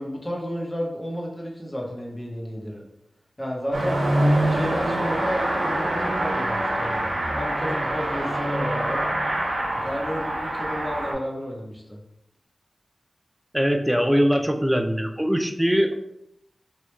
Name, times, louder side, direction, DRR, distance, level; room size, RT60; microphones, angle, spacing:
voice 1, 0.0-2.8 3.4-4.0 4.5-7.0 7.3-9.0 9.8-12.0, equal, 25° left, -1 dB, 0.9 m, -31 dB
Car passing by / Accelerating revving vroom, 3.7-11.1, right 1 dB, 90° right, 0.6 m, -25 dB
voice 2, 13.5-15.9, equal, 10° right, 5 dB, 0.3 m, -21 dB
3.1 x 2.3 x 3.1 m, 0.80 s
cardioid pair, 55°, 0 cm